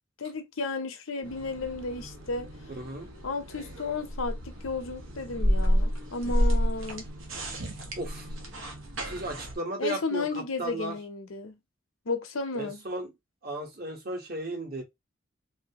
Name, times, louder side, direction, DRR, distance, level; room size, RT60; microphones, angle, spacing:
voice 1, 0.2-2.5 3.2-7.0 9.8-11.6 12.1-12.8, left 3 dB, 90° left, 0.8 m, -33 dB
sound 1, 1.2-9.6, equal, 85° right, 1.2 m, -30 dB
voice 2, 2.7-3.1 8.0-8.3 9.1-10.2 10.6-10.9 12.5-13.1 13.4-14.8, right 2 dB, 50° right, 1.2 m, -35 dB
3.3 x 2.8 x 2.8 m
head